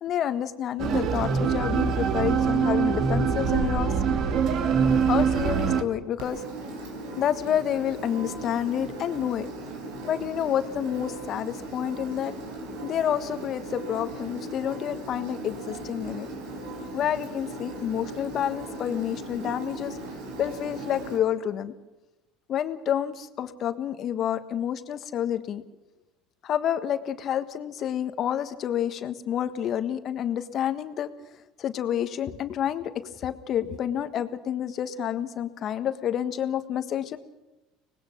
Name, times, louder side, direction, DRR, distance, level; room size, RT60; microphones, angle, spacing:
voice 1, 0.0-3.9 5.1-6.4 7.1-9.5 10.0-12.3 12.8-16.3 16.9-20.0 20.4-21.7 22.5-25.6 26.4-31.1 31.6-37.2, left 10 dB, 50° left, 10 dB, 1.5 m, -29 dB
sound 1, 0.8-5.8, right 6 dB, 55° right, 2.0 m, -24 dB
Engine, 6.2-21.2, right 2 dB, 80° right, 4.7 m, -38 dB
24.5 x 19.5 x 6.1 m, 1.0 s
supercardioid pair, 95°, 0 cm